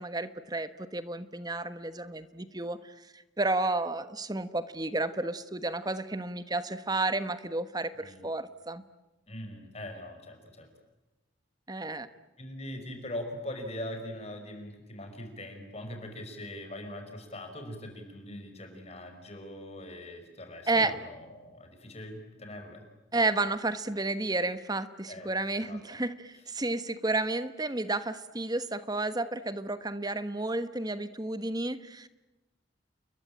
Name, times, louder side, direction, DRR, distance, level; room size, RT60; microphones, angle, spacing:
voice 1, 0.0-2.9 3.4-8.8 11.7-12.1 20.7-20.9 23.1-32.1, right 2 dB, 20° right, 12 dB, 1.3 m, -31 dB
voice 2, 9.3-10.7 12.4-22.9 25.1-25.3 25.7-25.8, left 1 dB, 35° left, 5 dB, 5.5 m, -41 dB
30.0 x 22.5 x 8.9 m, 1.1 s
head